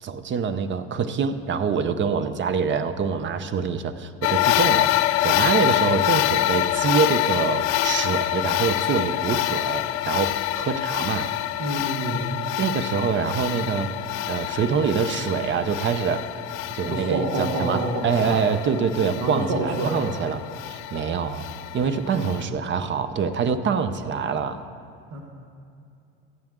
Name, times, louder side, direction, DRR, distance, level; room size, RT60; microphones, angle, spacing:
voice 1, 0.0-11.3 12.6-13.9 14.3-16.3 16.7-21.5 21.7-24.6, right 6 dB, 35° right, 11 dB, 0.7 m, -25 dB
sound 1, 4.2-22.4, left 15 dB, 50° left, 0.4 m, -26 dB
voice 2, 11.6-12.3 16.9-18.4 19.2-20.0 22.1-22.3 25.1-25.2, right 2 dB, 60° right, 1 dB, 1.5 m, -27 dB
14.5 x 8.7 x 3.7 m, 2.5 s
supercardioid pair, 90°, 34 cm